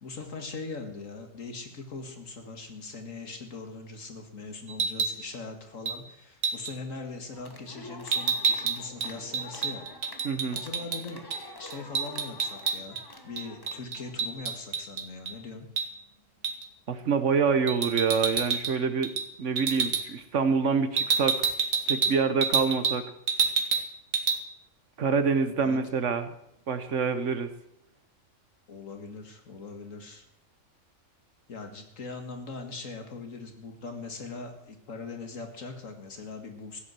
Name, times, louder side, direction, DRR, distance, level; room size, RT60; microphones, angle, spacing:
voice 1, 0.0-9.9 10.5-11.2 11.6-13.0 13.2-15.7 25.6-25.8 28.7-30.2 31.5-36.8, left 3 dB, 80° left, 5 dB, 2.3 m, -41 dB
sound 1, 4.7-5.2 5.9-6.0 6.4-6.7 8.1-11.0 11.3-11.4 11.7-13.0 13.4-15.3 15.8-15.9 16.4-16.7 17.7-18.7 19.0-19.3 19.6-20.0 21.0-23.0 23.3-23.9 24.1-24.4, right 5 dB, 85° right, 1.6 m, -28 dB
sound 2, 7.3-14.1, left 2 dB, 20° left, 1.4 m, -47 dB
voice 2, 10.2-10.6 16.9-19.1 19.4-21.4 21.9-23.0 25.0-26.3 26.7-27.5, right 5 dB, 65° right, 10 dB, 1.4 m, -26 dB
15.0 x 8.4 x 7.7 m, 0.78 s
omnidirectional pair, 1.3 m